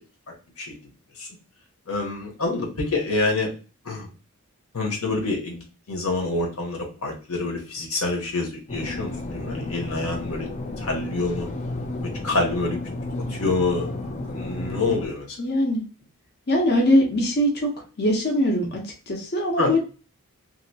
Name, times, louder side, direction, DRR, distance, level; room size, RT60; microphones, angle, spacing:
voice 1, 0.3-0.7 1.2-1.3 1.9-3.5 3.8-4.1 4.7-10.5 10.8-11.5 12.0-12.8 13.3-15.4 19.6-19.8, left 2 dB, 70° left, 1 dB, 1.1 m, -27 dB
sound 1, 8.7-15.1, left 2 dB, 30° left, 0.4 m, -32 dB
voice 2, 15.4-15.8 16.5-17.7 18.0-19.8, left 1 dB, 45° left, 0 dB, 0.9 m, -22 dB
2.9 x 2.8 x 2.8 m, 0.34 s
head